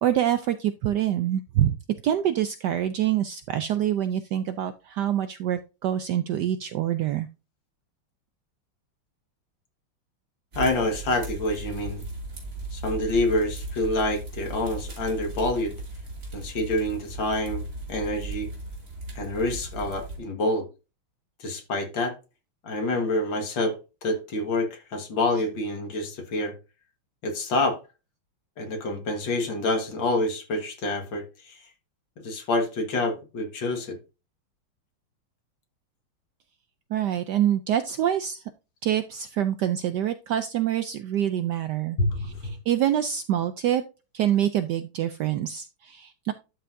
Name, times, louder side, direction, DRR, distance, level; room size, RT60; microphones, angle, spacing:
voice 1, 0.0-1.8 2.0-7.3 36.9-38.4 38.8-42.0 42.7-43.8 44.1-46.3, right 11 dB, 75° right, 1.0 m, -25 dB
sound 1, 10.5-20.2, right 2 dB, 40° right, 3.3 m, -37 dB
voice 2, 10.6-12.0 12.7-15.8 16.3-18.5 19.2-20.7 21.4-22.1 22.6-23.8 24.0-26.5 27.2-27.8 28.6-31.6 32.2-34.0 42.0-42.5, left 2 dB, 65° left, 2.3 m, -27 dB
12.0 x 5.7 x 2.6 m
omnidirectional pair, 2.3 m